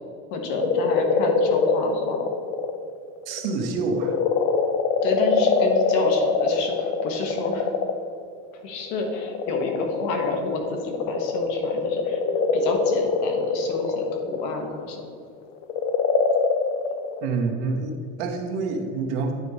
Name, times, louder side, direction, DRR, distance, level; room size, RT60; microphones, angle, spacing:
voice 1, 0.3-2.2 5.0-7.7 8.6-12.2 12.5-15.0, left 2 dB, 65° left, 3 dB, 1.4 m, -29 dB
sound 1, 0.6-2.8 3.2-8.1 8.9-15.1 15.6-17.3, left 5 dB, 40° left, 0.5 m, -24 dB
voice 2, 3.3-4.2 17.2-19.3, right 4 dB, 75° right, 3 dB, 1.2 m, -27 dB
9.4 x 4.7 x 4.1 m, 2.4 s
cardioid pair, 150°, 33 cm